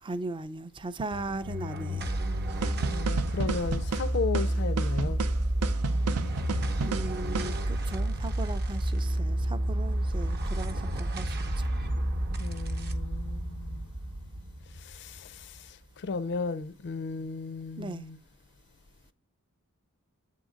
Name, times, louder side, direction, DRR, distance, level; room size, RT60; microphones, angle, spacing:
voice 1, 0.0-2.2 6.8-11.7 17.8-18.1, right 2 dB, 20° right, 0.4 m, -38 dB
sound 1, 1.1-15.7, right 1 dB, 45° right, 0.8 m, -30 dB
sound 2, 2.6-7.6, right 4 dB, 80° right, 0.5 m, -33 dB
voice 2, 2.9-5.2 12.4-13.9 14.8-18.2, left 4 dB, 50° left, 0.4 m, -35 dB
7.9 x 3.7 x 5.0 m
head